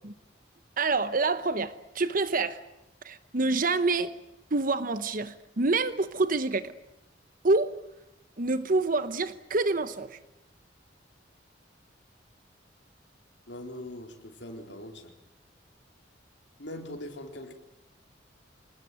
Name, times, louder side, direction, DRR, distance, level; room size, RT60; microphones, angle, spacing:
voice 1, 0.8-2.6 3.0-4.2 4.5-6.7 7.4-7.8 8.4-10.2, right 3 dB, 45° right, 1.0 m, -27 dB
voice 2, 13.5-15.0 16.6-17.5, left 1 dB, 65° left, 4.1 m, -41 dB
27.0 x 20.0 x 9.3 m
head